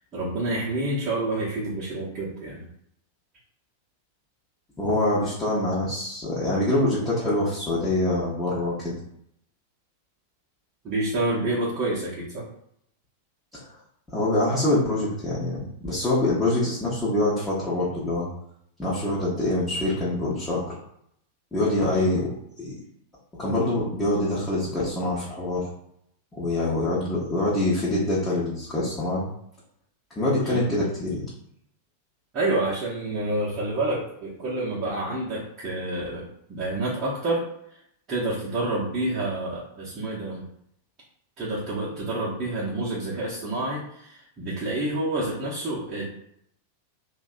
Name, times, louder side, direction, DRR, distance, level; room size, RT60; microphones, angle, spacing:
voice 1, 0.0-2.7 10.8-12.4 21.9-22.1 30.4-30.6 32.3-37.5 38.1-40.4 41.4-46.1, right 2 dB, 30° right, -8 dB, 0.7 m, -28 dB
voice 2, 4.8-8.9 13.5-13.7 14.1-18.3 18.8-20.7 21.5-22.3 22.6-22.7 23.4-25.7 26.3-29.2 30.1-31.2, left 1 dB, 15° left, -9 dB, 0.8 m, -25 dB
2.7 x 2.2 x 2.4 m, 0.73 s
figure-of-eight pair, 90°, 0 cm